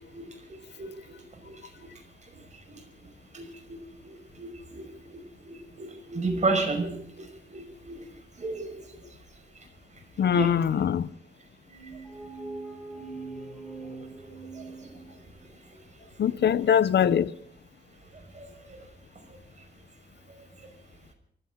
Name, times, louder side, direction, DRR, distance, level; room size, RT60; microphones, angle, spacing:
voice 1, 0.0-1.5 2.7-2.8 3.3-3.8 4.0-8.0 8.4-8.7 10.3-10.5 11.9-12.0 14.5-14.9 16.4-16.5 18.3-18.8, right 3 dB, 40° right, 5.5 m, -33 dB
voice 2, 10.2-11.1 16.2-17.3, left 8 dB, 75° left, 0.7 m, -22 dB
sound 1, 11.7-15.4, right 3 dB, ahead, 4.6 m, -42 dB
24.0 x 15.5 x 3.8 m
wide cardioid pair, 115°, 18 cm